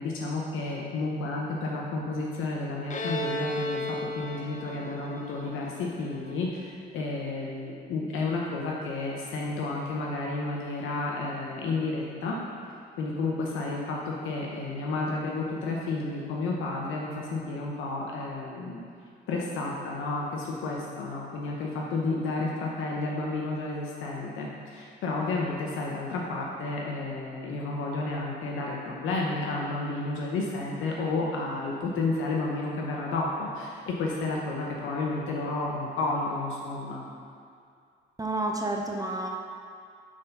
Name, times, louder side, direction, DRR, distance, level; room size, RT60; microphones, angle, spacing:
voice 1, 0.0-12.3 13.0-18.9 19.3-37.0, left 3 dB, 85° left, -2 dB, 0.8 m, -31 dB
Bowed string instrument, 2.9-6.5, equal, 40° left, 0.7 m, -34 dB
voice 2, 38.2-39.3, right 2 dB, 20° right, 1 dB, 0.6 m, -30 dB
6.0 x 4.4 x 5.3 m, 2.3 s
cardioid pair, 90°, 20 cm